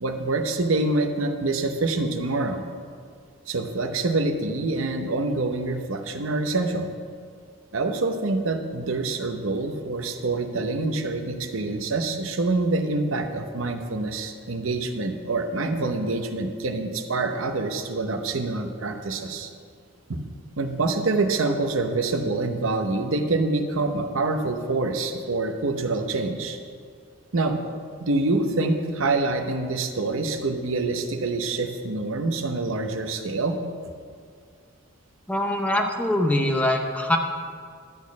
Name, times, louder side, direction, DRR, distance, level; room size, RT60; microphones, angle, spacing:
voice 1, 0.0-2.6 3.5-6.9 7.7-19.5 20.1-20.2 20.6-26.6 27.3-27.6 28.0-33.6, right 3 dB, 65° right, 5 dB, 0.8 m, -26 dB
voice 2, 35.3-37.2, left 1 dB, 5° left, 3 dB, 0.6 m, -23 dB
12.0 x 4.3 x 8.2 m, 2.1 s
head